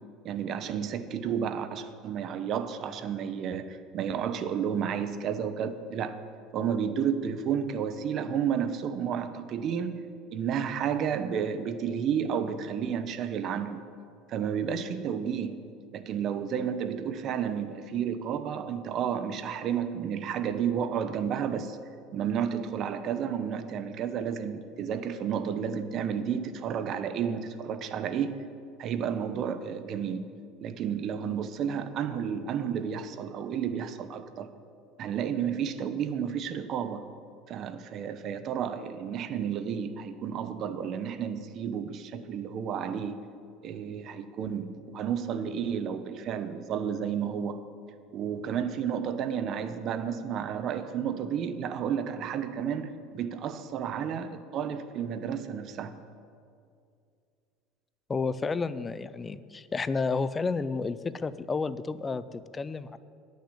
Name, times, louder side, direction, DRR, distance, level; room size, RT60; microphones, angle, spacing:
voice 1, 0.2-6.2 6.5-10.0 10.3-13.8 14.3-15.6 15.9-21.8 22.1-28.4 28.8-30.3 30.6-34.5 35.0-37.1 37.5-43.2 43.6-47.6 48.1-55.9, right 8 dB, 45° right, 11 dB, 0.7 m, -31 dB
voice 2, 58.1-63.0, left 4 dB, 20° left, 15 dB, 0.4 m, -31 dB
9.8 x 6.4 x 8.3 m, 2.4 s
supercardioid pair, 130°, 0 cm